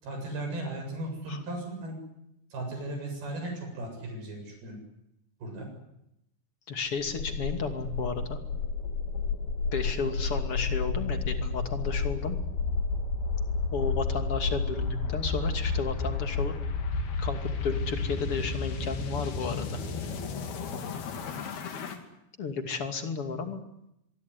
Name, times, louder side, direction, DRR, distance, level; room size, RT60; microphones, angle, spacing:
voice 1, 0.0-2.0 2.5-4.8 5.4-5.7, right 1 dB, 85° right, 3 dB, 9.4 m, -36 dB
voice 2, 6.7-8.4 9.7-12.4 13.7-16.5 17.2-19.6 22.4-23.6, left 5 dB, 40° left, 6 dB, 3.1 m, -33 dB
sound 1, 7.0-22.0, left 4 dB, 85° left, 4.6 m, -31 dB
24.0 x 23.5 x 9.8 m, 0.81 s
omnidirectional pair, 4.3 m